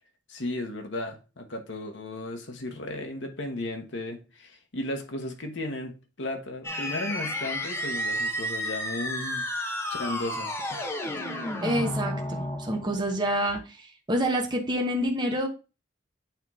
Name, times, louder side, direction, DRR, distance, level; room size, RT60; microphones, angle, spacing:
voice 1, 0.3-9.5 9.9-11.2, left 1 dB, 75° left, 1.1 m, -35 dB
sound 1, 6.6-13.2, left 1 dB, 15° left, 1.0 m, -32 dB
voice 2, 11.6-13.6 14.1-15.5, equal, 25° right, 1.0 m, -27 dB
8.6 x 3.1 x 3.6 m
head